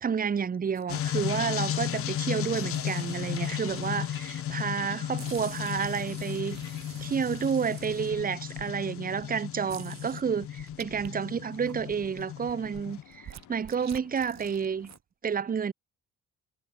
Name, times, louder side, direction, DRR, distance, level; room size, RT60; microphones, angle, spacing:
voice 1, 0.0-6.6 7.0-14.9 15.2-15.7, right 6 dB, 30° right, 0.8 m, -30 dB
sound 1, 0.7-1.3 2.0-4.7 5.2-8.7 9.2-9.3 9.7-11.1 11.5-15.0, right 10 dB, 60° right, 3.2 m, -48 dB
sound 2, 0.9-13.0, left 11 dB, 45° left, 0.6 m, -35 dB
sound 3, 1.7-15.0, left 14 dB, 80° left, 2.8 m, -56 dB
cardioid pair, 90°, 30 cm